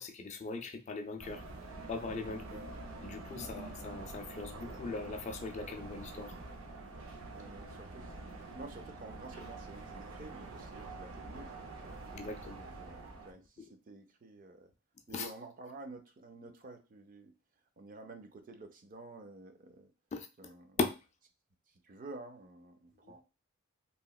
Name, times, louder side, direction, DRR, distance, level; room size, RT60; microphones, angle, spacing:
voice 1, 0.0-1.4 1.9-2.5 3.0-6.4 12.1-12.7 15.1-15.3 20.1-20.5 20.8-20.9, left 3 dB, 35° left, 6 dB, 0.3 m, -39 dB
sound 1, 1.2-13.3, right 2 dB, 90° right, 0.6 m, -46 dB
voice 2, 2.3-2.7 3.4-3.6 7.4-8.2 8.5-12.0 12.6-14.7 15.1-17.3 17.8-19.9 20.4-20.8 21.7-23.2, right 2 dB, 40° right, 7 dB, 0.4 m, -50 dB
3.0 x 2.9 x 2.3 m, 0.30 s
head